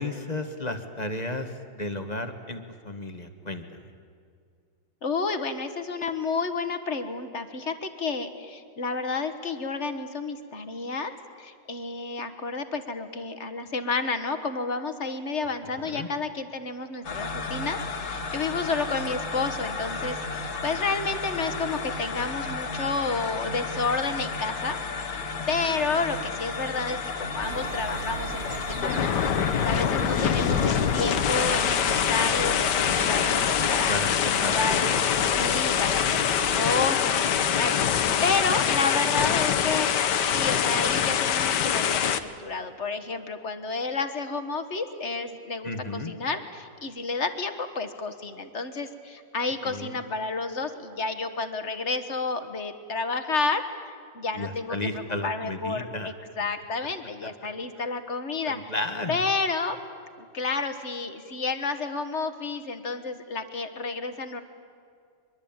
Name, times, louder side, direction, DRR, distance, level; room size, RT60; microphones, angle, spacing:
voice 1, 0.0-1.5 1.7-3.6 15.9-16.1 33.9-35.3 45.6-46.1 49.6-49.9 54.3-56.1 58.4-59.2, left 2 dB, 25° left, 7 dB, 1.5 m, -33 dB
voice 2, 5.0-11.1 11.4-25.2 25.5-33.9 34.2-35.1 35.4-58.7 59.1-59.8 60.2-64.4, left 4 dB, 40° left, 9 dB, 1.6 m, -31 dB
sound 1, 17.0-33.8, left 4 dB, 85° left, 2.5 m, -33 dB
sound 2, 27.4-36.6, right 7 dB, 50° right, 0.7 m, -40 dB
sound 3, 28.3-42.2, left 8 dB, 65° left, 1.6 m, -24 dB
23.5 x 23.0 x 8.8 m, 2.3 s
omnidirectional pair, 2.1 m